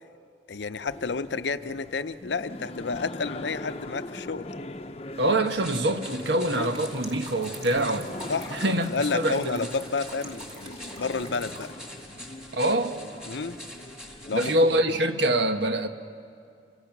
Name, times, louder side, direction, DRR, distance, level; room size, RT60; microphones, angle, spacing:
voice 1, 0.5-4.5 6.5-6.7 8.3-8.5 8.9-11.7 13.3-13.6 14.3-14.5 14.9-15.0, left 4 dB, 75° left, 0.7 m, -30 dB
sound 1, 0.9-14.8, left 1 dB, 35° left, 0.8 m, -41 dB
voice 2, 5.2-8.1 8.5-9.6 12.5-13.0 14.3-15.9, right 1 dB, 70° right, 1.3 m, -25 dB
sound 2, 5.4-14.6, equal, 5° right, 2.1 m, -45 dB
sound 3, 6.5-11.7, right 1 dB, 35° right, 2.6 m, -46 dB
28.0 x 24.0 x 6.0 m
head